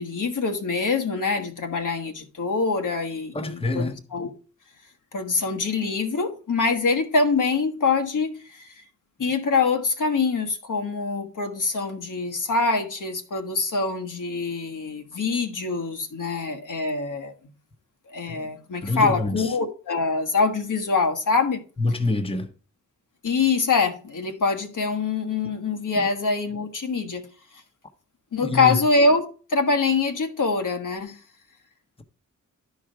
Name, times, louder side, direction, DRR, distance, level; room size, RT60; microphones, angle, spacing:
voice 1, 0.0-4.3 5.1-8.7 9.2-17.3 18.1-21.6 23.2-27.3 28.3-31.2, left 4 dB, 85° left, 1.4 m, -24 dB
voice 2, 3.3-4.0 18.3-18.4 18.8-19.6 21.8-22.5 25.9-26.1 28.4-28.8, left 2 dB, 20° left, 0.9 m, -26 dB
11.5 x 4.8 x 4.6 m
wide cardioid pair, 145°, 31 cm